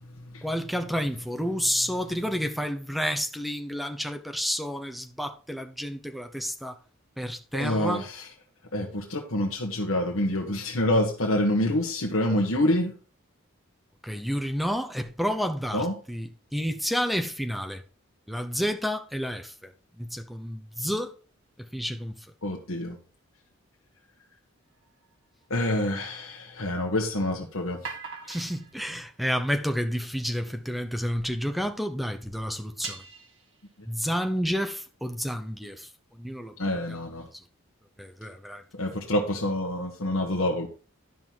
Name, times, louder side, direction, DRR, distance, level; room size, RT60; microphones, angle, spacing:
voice 1, 0.4-6.8 7.2-8.0 14.0-17.8 18.3-19.7 20.0-21.1 21.7-22.1 28.3-33.0 33.9-35.9 36.2-37.0 38.0-38.6, equal, ahead, 0.7 m, -30 dB
voice 2, 7.5-8.3 8.7-12.9 15.7-15.9 22.4-23.0 25.5-27.9 36.6-37.3 38.7-40.7, left 1 dB, 75° left, 1.3 m, -27 dB
sound 1, 24.7-26.2 27.7-30.5 31.2-31.3 31.6-31.7 32.0-32.1 32.6-34.0, right 5 dB, 65° right, 2.3 m, -44 dB
11.0 x 5.6 x 4.6 m
head